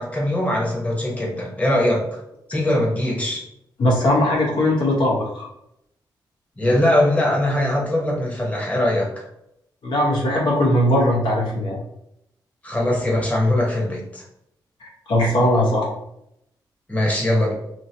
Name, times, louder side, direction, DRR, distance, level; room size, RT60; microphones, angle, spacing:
voice 1, 0.0-2.2 2.5-3.4 6.6-9.2 12.6-14.2 16.9-17.5, left 1 dB, 15° left, -2 dB, 1.0 m, -21 dB
voice 2, 3.8-5.5 9.8-11.8 14.8-15.9, left 1 dB, 75° left, -3 dB, 1.1 m, -19 dB
2.8 x 2.7 x 2.8 m, 0.79 s
cardioid pair, 80°, 8 cm